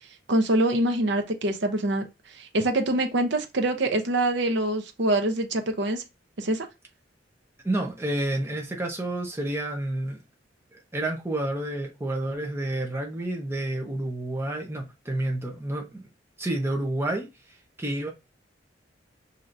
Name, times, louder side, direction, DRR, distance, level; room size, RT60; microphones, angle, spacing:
voice 1, 0.3-2.0 2.3-6.0 6.4-6.7, right 1 dB, 70° right, 0.8 m, -24 dB
voice 2, 7.6-10.2 10.7-16.0 16.4-17.3 17.8-18.1, right 1 dB, 15° right, 0.9 m, -29 dB
6.0 x 2.8 x 2.6 m
head